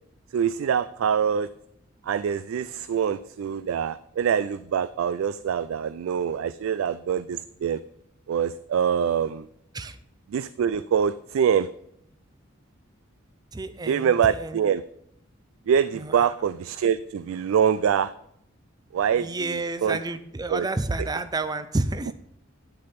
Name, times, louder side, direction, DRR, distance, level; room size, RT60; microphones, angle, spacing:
voice 1, 0.3-1.5 2.0-7.8 8.3-9.5 10.3-11.7 13.9-14.8 15.7-18.1 18.9-19.3 19.8-20.0 20.5-20.7, right 8 dB, 85° right, 15 dB, 0.3 m, -24 dB
voice 2, 13.5-14.6 15.9-16.3 19.1-22.1, right 2 dB, 20° right, 11 dB, 0.5 m, -30 dB
9.8 x 6.4 x 4.2 m, 0.72 s
head